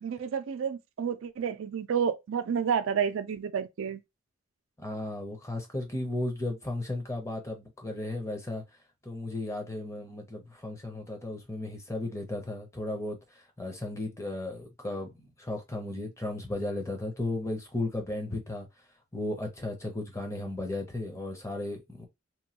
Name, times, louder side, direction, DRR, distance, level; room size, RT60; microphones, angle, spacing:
voice 1, 0.0-4.0, right 7 dB, 70° right, 0.4 m, -30 dB
voice 2, 4.8-8.6 9.0-13.2 13.6-18.7 19.1-22.1, left 2 dB, 15° left, 0.6 m, -35 dB
2.9 x 2.2 x 2.8 m
head